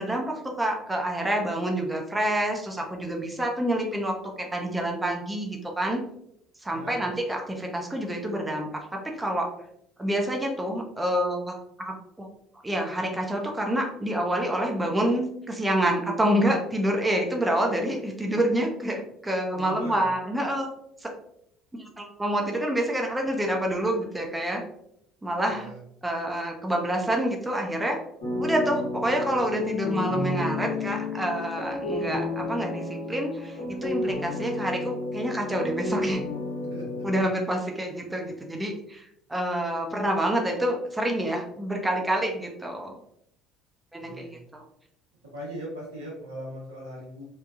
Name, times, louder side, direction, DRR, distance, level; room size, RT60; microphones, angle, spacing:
voice 1, 0.0-6.0 6.6-9.5 10.0-12.3 12.6-20.7 21.0-21.1 22.0-24.6 25.2-25.7 26.0-28.0 28.4-36.2 37.0-43.0 43.9-44.3 44.5-44.6, right 1 dB, 15° right, 1 dB, 0.6 m, -27 dB
voice 2, 6.7-7.1 19.5-20.1 25.5-25.8 36.7-37.0 43.9-44.4 45.3-47.2, right 1 dB, 90° right, -5 dB, 1.0 m, -39 dB
sound 1, 28.2-37.2, left 2 dB, 80° left, 1.0 m, -31 dB
3.0 x 2.2 x 2.3 m, 0.74 s
hypercardioid pair, 60°, 0 cm